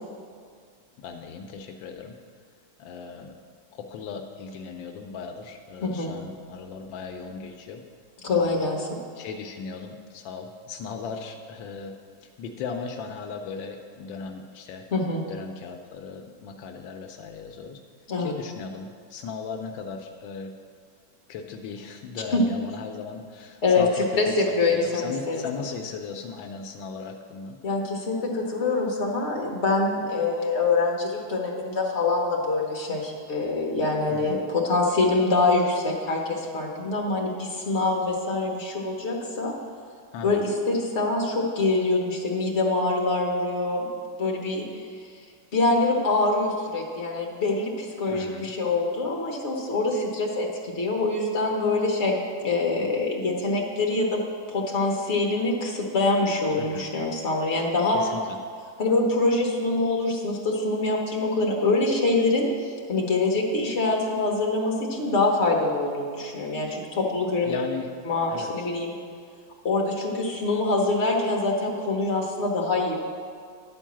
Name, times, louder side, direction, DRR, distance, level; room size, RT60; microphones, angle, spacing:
voice 1, 1.0-2.2 2.8-3.3 3.7-7.8 8.3-8.7 9.1-11.9 12.2-14.9 15.3-17.8 18.2-20.6 21.3-27.6 34.1-34.5 40.1-40.5 48.1-48.5 56.6-56.9 57.9-58.4 66.7-66.8 67.4-67.9 68.3-68.7, left 5 dB, 85° left, 5 dB, 1.4 m, -37 dB
voice 2, 5.8-6.1 8.2-8.9 14.9-15.2 18.1-18.3 22.3-22.4 23.6-23.8 24.2-25.4 27.6-39.5 40.2-40.4 40.7-43.9 44.2-44.6 45.5-52.2 52.4-54.2 54.5-58.0 58.8-62.5 62.9-67.6 68.0-68.9 69.6-73.0, left 3 dB, 40° left, -1 dB, 1.5 m, -25 dB
10.5 x 4.6 x 7.4 m, 2.1 s
omnidirectional pair, 2.0 m